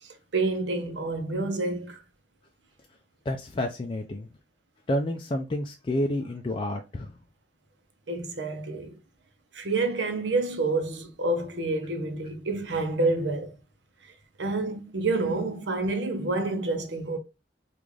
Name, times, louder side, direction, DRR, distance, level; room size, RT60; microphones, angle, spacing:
voice 1, 0.0-2.0 8.1-9.0 9.5-13.5 14.0-14.1 14.4-17.2, right 2 dB, 90° right, 0.7 m, -28 dB
voice 2, 3.3-4.3 4.9-7.1, left 1 dB, 30° left, 0.3 m, -29 dB
3.7 x 2.5 x 3.1 m
head